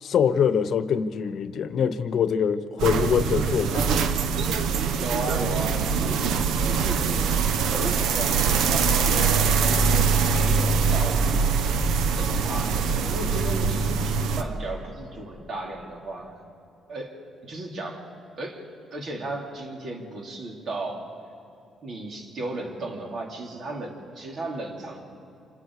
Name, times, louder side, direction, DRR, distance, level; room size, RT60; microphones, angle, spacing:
voice 1, 0.0-4.0, left 7 dB, 65° left, 13 dB, 0.9 m, -24 dB
sound 1, 2.8-14.4, right 5 dB, 85° right, 0.9 m, -23 dB
voice 2, 5.0-6.2 6.6-7.3 7.6-11.3 12.2-16.4 16.9-18.1 18.4-21.1 21.8-25.0, right 2 dB, 55° right, 1 dB, 3.5 m, -35 dB
26.5 x 26.0 x 4.9 m, 2.6 s
cardioid pair, 90°, 0 cm